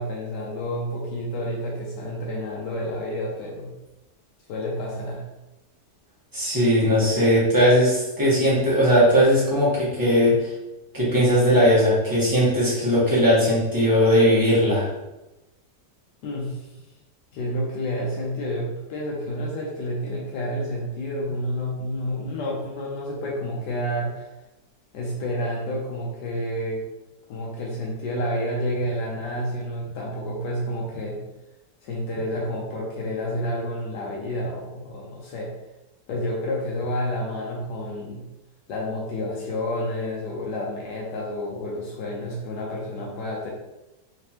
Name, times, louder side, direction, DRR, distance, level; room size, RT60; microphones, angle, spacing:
voice 1, 0.0-3.7 4.5-5.3 16.2-16.8 17.3-24.3 24.9-26.8 27.3-31.2 31.8-35.5 36.1-38.2 38.7-43.5, equal, 80° left, -2 dB, 1.3 m, -29 dB
voice 2, 6.3-10.5 10.9-14.9, equal, 15° right, -7 dB, 1.1 m, -19 dB
3.7 x 3.3 x 2.9 m, 1.0 s
omnidirectional pair, 1.8 m